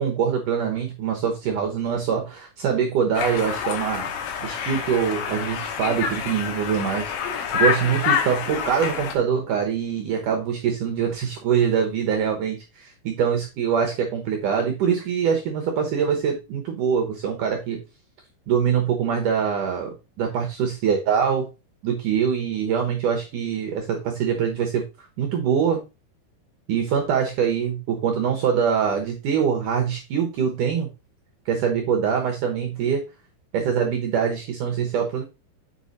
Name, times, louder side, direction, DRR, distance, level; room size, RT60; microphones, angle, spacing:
voice 1, 0.0-4.1 4.4-17.8 18.5-21.5 21.8-24.8 25.2-25.8 26.7-30.9 31.5-33.0 33.5-35.2, right 7 dB, 70° right, 3 dB, 1.9 m, -24 dB
Conversation, 3.1-9.1, left 7 dB, 75° left, 3.4 m, -27 dB
8.0 x 5.1 x 4.1 m, 0.28 s
omnidirectional pair, 5.2 m